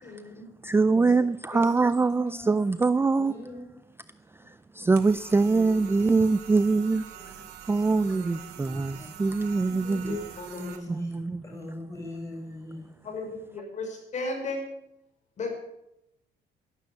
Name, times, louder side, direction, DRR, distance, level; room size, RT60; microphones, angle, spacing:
voice 1, 0.0-0.5 1.5-1.6 9.7-10.7 13.0-14.7 15.4-15.5, left 3 dB, 45° left, 5.6 m, -35 dB
voice 2, 0.6-3.3 4.5-7.0 7.7-10.2 10.9-11.4, right 3 dB, 15° right, 0.4 m, -24 dB
voice 3, 2.0-3.7 5.4-6.1 7.1-7.4 8.1-9.3 9.6-12.9, left 1 dB, 15° left, 5.9 m, -43 dB
sound 1, 4.9-10.8, right 10 dB, 80° right, 2.3 m, -45 dB
12.0 x 12.0 x 8.3 m
cardioid pair, 110°, 17 cm